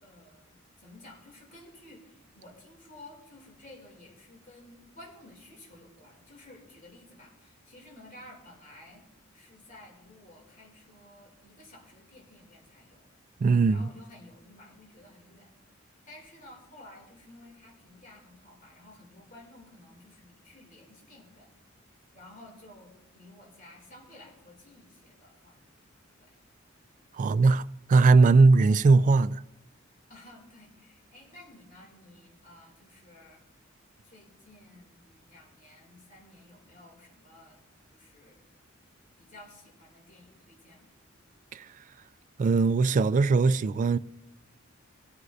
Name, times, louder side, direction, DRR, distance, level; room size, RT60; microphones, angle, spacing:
voice 1, 0.0-9.0 9.3-13.0 13.7-15.5 16.0-21.5 22.1-25.7 26.2-26.3 27.2-27.4 30.1-33.4 34.0-37.6 37.9-38.4 39.2-40.9, left 1 dB, 40° left, 2.7 m, -53 dB
voice 2, 13.4-13.9 27.1-27.6 27.9-29.4 41.5-41.7 42.4-44.0, right 4 dB, 40° right, 0.3 m, -20 dB
19.5 x 9.6 x 2.6 m
head